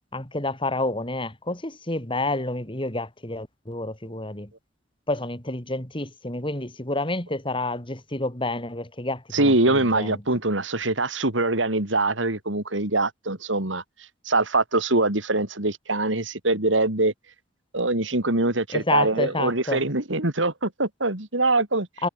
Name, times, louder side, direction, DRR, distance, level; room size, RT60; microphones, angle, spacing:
voice 1, 0.1-4.5 5.1-10.2 18.7-19.8 22.0-22.1, left 2 dB, 25° left, 4.2 m, -29 dB
voice 2, 9.3-13.8 14.3-17.1 17.7-21.9, right 2 dB, 80° right, 3.8 m, -23 dB
head